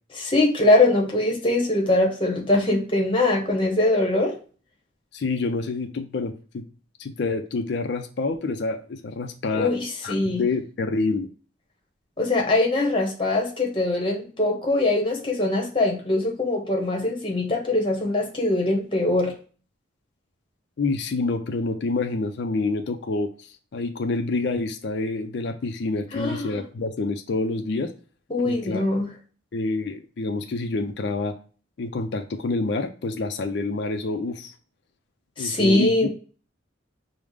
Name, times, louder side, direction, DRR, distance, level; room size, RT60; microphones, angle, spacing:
voice 1, 0.2-4.3 9.5-10.4 12.2-19.3 26.1-26.6 28.3-29.1 35.4-36.1, left 2 dB, 25° left, 1 dB, 0.9 m, -22 dB
voice 2, 5.1-6.7 7.0-9.7 10.0-11.3 20.8-27.9 28.4-28.8 29.5-31.4 31.8-34.5 35.4-36.1, left 3 dB, 55° left, 7 dB, 0.4 m, -27 dB
4.8 x 2.0 x 3.5 m, 0.38 s
head